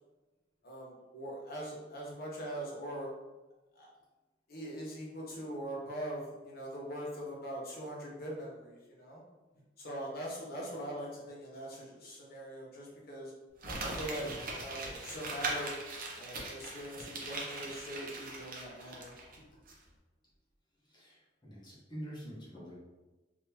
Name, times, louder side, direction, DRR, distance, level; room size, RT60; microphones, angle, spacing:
voice 1, 0.6-3.1 3.7-3.9 4.5-9.2 9.8-13.3 13.8-19.4, right 1 dB, 55° left, -4 dB, 1.0 m, -42 dB
Crumpling crinkling, 13.6-19.4 19.7-19.8, right 2 dB, 50° right, 0.7 m, -40 dB
voice 2, 20.9-22.8, equal, 25° left, -6 dB, 1.1 m, -46 dB
3.6 x 2.9 x 2.9 m, 1.2 s
head